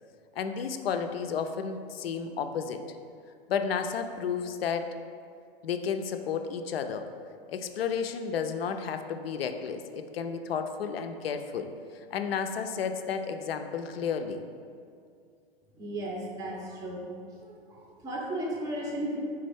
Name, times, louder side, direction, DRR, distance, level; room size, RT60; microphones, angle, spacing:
voice 1, 0.4-2.8 3.5-5.0 5.6-7.1 7.5-11.7 12.1-14.5, left 6 dB, 80° left, 7 dB, 0.5 m, -32 dB
voice 2, 15.8-17.1 17.4-19.2, right 1 dB, 10° right, -2 dB, 0.5 m, -35 dB
4.3 x 3.5 x 3.4 m, 2.3 s
hypercardioid pair, 120°, 29 cm